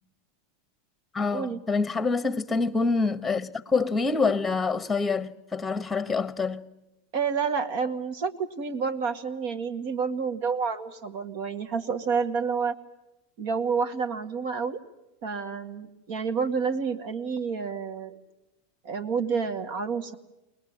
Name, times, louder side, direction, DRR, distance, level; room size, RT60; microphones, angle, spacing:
voice 1, 1.1-6.6, left 4 dB, 10° left, 1.2 m, -26 dB
voice 2, 7.1-12.8 13.4-14.8 15.2-18.2 18.8-20.2, right 5 dB, 60° right, 2.0 m, -29 dB
22.0 x 20.0 x 9.6 m
hypercardioid pair, 100°, 0 cm